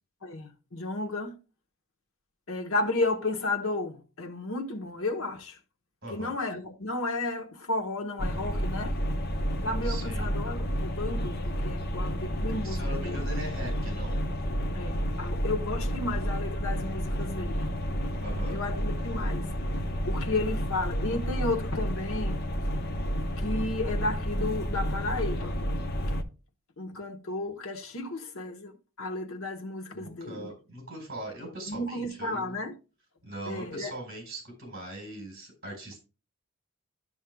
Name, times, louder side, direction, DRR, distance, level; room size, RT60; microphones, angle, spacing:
voice 1, 0.2-1.4 2.5-5.6 6.1-9.0 9.6-13.2 14.7-17.7 18.5-19.6 20.1-22.4 23.4-25.7 26.8-30.5 31.7-32.7 33.5-34.0, left 2 dB, 70° left, 1.1 m, -33 dB
voice 2, 6.0-6.3 9.8-10.3 12.6-14.2 18.2-18.6 29.9-32.6 33.2-36.0, right 1 dB, 45° right, 4.2 m, -40 dB
sound 1, 8.2-26.2, equal, 45° left, 0.9 m, -30 dB
13.0 x 6.3 x 2.3 m
head